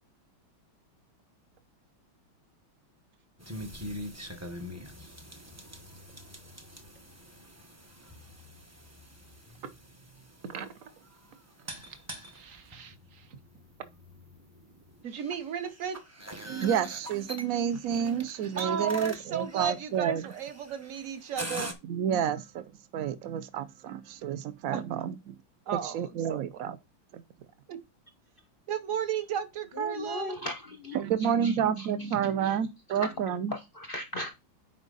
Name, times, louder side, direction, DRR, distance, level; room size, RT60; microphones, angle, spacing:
sound 1, 3.4-21.7, equal, 15° right, 0.5 m, -44 dB
voice 1, 12.3-13.3 15.0-16.0 18.6-21.7 24.7-24.8 25.7-26.6 27.7-27.8 28.7-30.4, right 8 dB, 50° right, 1.0 m, -35 dB
voice 2, 16.4-20.2 21.8-25.4 25.8-26.8 27.1-27.2 30.9-33.5, right 8 dB, 75° right, 0.7 m, -30 dB
voice 3, 29.7-31.0 31.4-31.9 32.4-32.5 32.9-33.1 33.5-34.3, left 2 dB, 55° left, 0.6 m, -37 dB
9.0 x 4.9 x 4.0 m
omnidirectional pair, 2.3 m